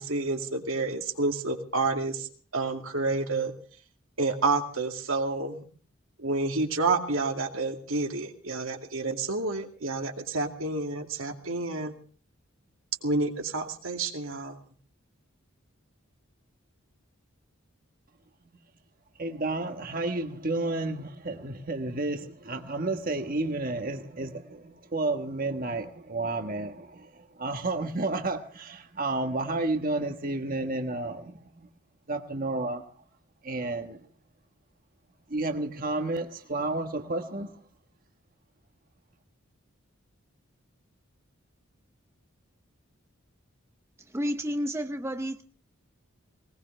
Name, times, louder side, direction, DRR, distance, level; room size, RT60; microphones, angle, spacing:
voice 1, 0.0-2.3 2.5-3.5 4.2-5.6 6.2-11.9 13.0-14.6, right 3 dB, 80° right, 2.3 m, -29 dB
voice 2, 19.2-31.7 32.1-32.9 33.4-34.0 35.3-37.5, right 2 dB, 40° right, 1.3 m, -31 dB
voice 3, 44.1-45.4, equal, 15° right, 0.7 m, -30 dB
20.0 x 20.0 x 3.3 m
head